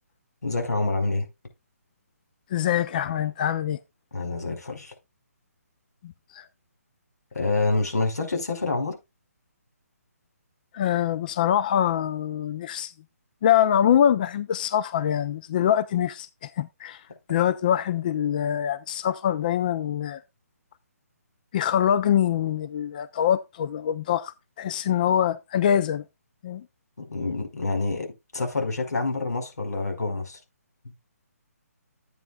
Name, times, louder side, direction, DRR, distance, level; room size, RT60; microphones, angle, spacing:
voice 1, 0.4-1.3 4.1-4.9 7.3-8.9 27.0-28.1 28.3-30.4, left 3 dB, 90° left, 5.0 m, -27 dB
voice 2, 2.5-3.8 6.0-6.4 10.7-12.9 13.4-17.0 17.3-20.2 21.5-26.0 26.4-26.6, left 10 dB, 30° left, 0.4 m, -24 dB
12.0 x 9.1 x 2.4 m
hypercardioid pair, 160°, 9 cm